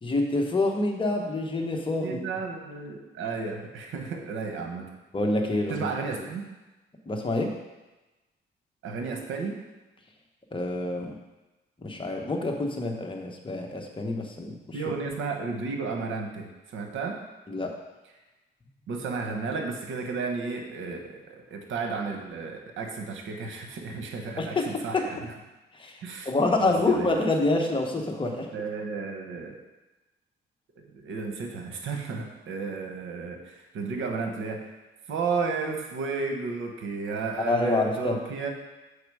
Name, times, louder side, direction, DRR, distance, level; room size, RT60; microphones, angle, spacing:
voice 1, 0.0-2.2 5.1-5.9 7.1-7.5 10.5-11.2 11.8-14.8 17.5-17.8 24.4-25.0 25.7-26.0 26.2-28.5 37.4-38.2, left 2 dB, 25° left, 2 dB, 1.2 m, -27 dB
voice 2, 2.0-4.9 5.7-6.4 8.8-9.6 14.7-17.2 18.9-25.2 26.0-26.3 26.6-27.1 28.5-29.6 30.9-34.7 35.1-38.5, right 4 dB, 80° right, 3 dB, 1.2 m, -33 dB
7.2 x 4.8 x 4.8 m, 1.1 s
cardioid pair, 90°, 20 cm